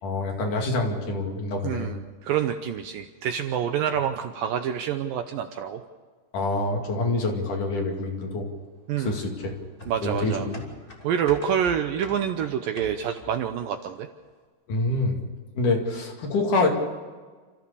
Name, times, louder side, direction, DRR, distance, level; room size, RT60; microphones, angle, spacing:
voice 1, 0.0-1.9 6.3-8.5 9.0-9.5 10.0-10.6 14.7-15.2 15.5-16.7, left 2 dB, 55° left, 1 dB, 3.7 m, -26 dB
voice 2, 1.6-5.8 8.9-9.2 9.9-10.5 11.0-14.1, right 9 dB, 75° right, 7 dB, 2.2 m, -27 dB
sound 1, 9.1-13.5 13.9-14.0, left 1 dB, 15° left, 2.3 m, -44 dB
29.0 x 14.5 x 6.9 m, 1.4 s
omnidirectional pair, 4.7 m